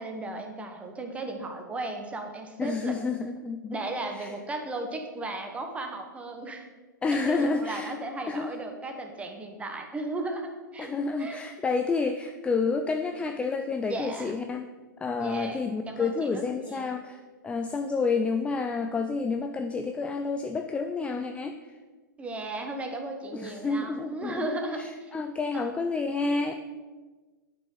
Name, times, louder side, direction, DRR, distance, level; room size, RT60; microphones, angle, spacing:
voice 1, 0.0-3.0 3.7-6.7 7.1-10.9 11.2-11.4 13.9-14.3 15.2-16.9 22.2-25.1 25.5-25.7, right 2 dB, 10° right, 4 dB, 1.3 m, -35 dB
voice 2, 2.6-3.8 4.1-4.3 7.0-7.9 8.3-8.5 10.8-14.7 15.0-21.8 23.3-26.5, left 4 dB, 10° left, 7 dB, 0.4 m, -29 dB
8.9 x 6.6 x 5.6 m, 1.3 s
hypercardioid pair, 125°, 11 cm